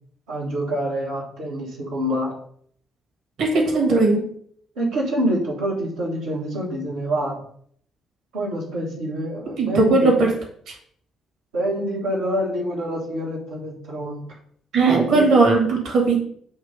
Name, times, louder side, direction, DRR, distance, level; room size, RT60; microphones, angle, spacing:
voice 1, 0.3-2.3 3.5-3.9 4.7-7.4 8.3-10.2 11.5-14.2 14.8-15.3, equal, 75° right, -8 dB, 1.4 m, -26 dB
voice 2, 3.4-4.2 9.6-10.3 10.7-10.8 14.7-16.2, right 3 dB, 55° right, 0 dB, 1.6 m, -18 dB
7.2 x 3.1 x 5.2 m, 0.63 s
figure-of-eight pair, 45°, 0 cm